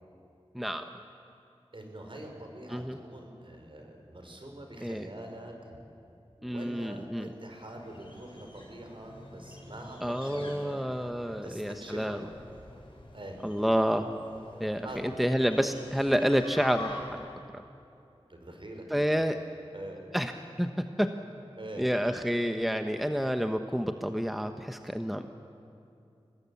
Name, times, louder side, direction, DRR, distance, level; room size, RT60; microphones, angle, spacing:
voice 1, 0.5-0.9 2.7-3.0 4.8-5.1 6.4-7.3 10.0-12.3 13.4-14.1 14.6-17.2 17.5-17.6 18.9-19.4 20.1-20.3 20.6-21.1 21.8-25.3, equal, ahead, 7 dB, 1.1 m, -29 dB
voice 2, 1.7-5.8 6.4-10.8 11.3-12.2 13.1-13.4 14.8-15.3 18.3-19.1 19.7-20.0 21.5-21.9, right 1 dB, 55° right, 3 dB, 5.0 m, -44 dB
sound 1, 7.5-17.4, left 2 dB, 55° left, 6.3 m, -48 dB
25.0 x 19.5 x 8.5 m, 2.6 s
cardioid pair, 40°, 11 cm